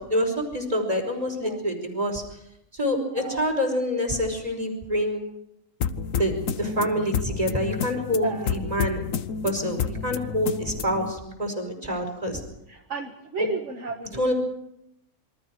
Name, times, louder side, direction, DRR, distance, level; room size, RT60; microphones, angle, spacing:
voice 1, 0.0-2.4 2.7-5.2 6.2-9.1 9.4-12.4 13.4-13.5 14.1-14.3, equal, 25° right, 3 dB, 5.2 m, -27 dB
sound 1, 5.8-11.1, left 7 dB, 70° left, 1.4 m, -30 dB
voice 2, 8.2-8.6 11.9-12.0 12.7-14.3, right 3 dB, 55° right, 3 dB, 2.0 m, -34 dB
27.5 x 23.5 x 4.8 m, 0.81 s
omnidirectional pair, 1.5 m